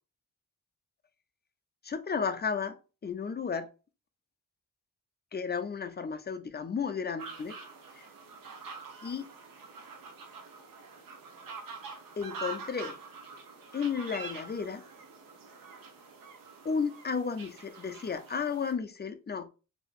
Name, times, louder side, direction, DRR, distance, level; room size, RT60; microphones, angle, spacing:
voice 1, 1.8-3.7 5.3-7.6 8.0-8.1 9.0-9.3 12.2-13.0 13.7-14.9 16.6-19.5, left 6 dB, 30° left, 0.4 m, -33 dB
sound 1, 7.2-18.7, right 4 dB, 85° right, 0.8 m, -46 dB
3.6 x 2.8 x 2.3 m
wide cardioid pair, 90°, 33 cm